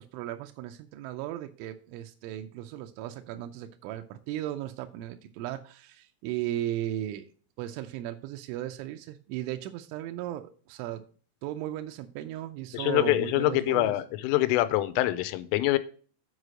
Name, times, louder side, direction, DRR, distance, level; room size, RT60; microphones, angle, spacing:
voice 1, 0.0-7.2 7.6-11.0 11.4-13.9, right 13 dB, 80° right, 6 dB, 2.9 m, -36 dB
voice 2, 12.7-15.8, left 16 dB, 90° left, 13 dB, 3.2 m, -25 dB
8.1 x 4.9 x 6.2 m, 0.41 s
omnidirectional pair, 5.8 m